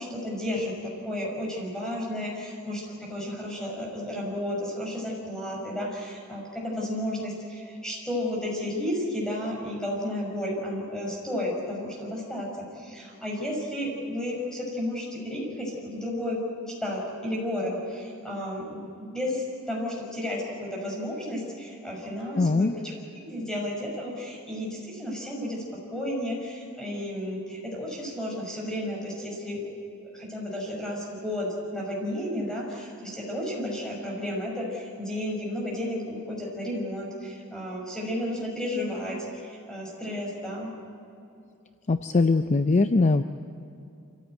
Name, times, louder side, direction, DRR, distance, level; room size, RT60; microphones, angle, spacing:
voice 1, 0.0-16.4 16.8-18.8 19.1-22.9 23.2-25.6 25.9-29.6 30.0-40.7, left 1 dB, 5° left, -3 dB, 5.6 m, -32 dB
voice 2, 22.4-22.7 41.9-43.2, left 3 dB, 30° left, 10 dB, 0.5 m, -21 dB
26.0 x 15.0 x 9.1 m, 2.6 s
head